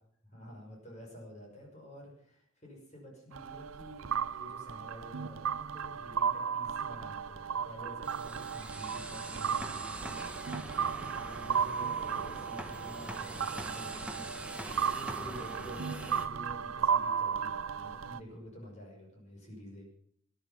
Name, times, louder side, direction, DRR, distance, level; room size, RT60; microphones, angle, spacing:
voice 1, 0.3-10.3 10.7-19.8, equal, 35° left, -1 dB, 5.8 m, -50 dB
sound 1, 3.3-18.2, right 7 dB, 80° right, 0.6 m, -35 dB
sound 2, 8.0-16.3, right 1 dB, 5° right, 1.2 m, -43 dB
22.0 x 11.0 x 5.6 m, 0.63 s
head